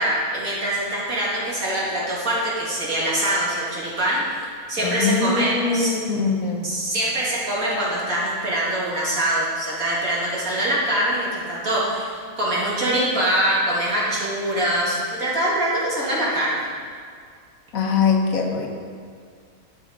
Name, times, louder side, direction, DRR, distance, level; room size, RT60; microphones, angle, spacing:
voice 1, 0.0-4.2 4.7-5.9 6.6-16.7, right 1 dB, 65° right, -6 dB, 2.8 m, -23 dB
voice 2, 4.8-6.7 17.7-18.7, left 5 dB, 65° left, 1 dB, 1.5 m, -22 dB
12.0 x 6.0 x 5.1 m, 2.1 s
omnidirectional pair, 1.6 m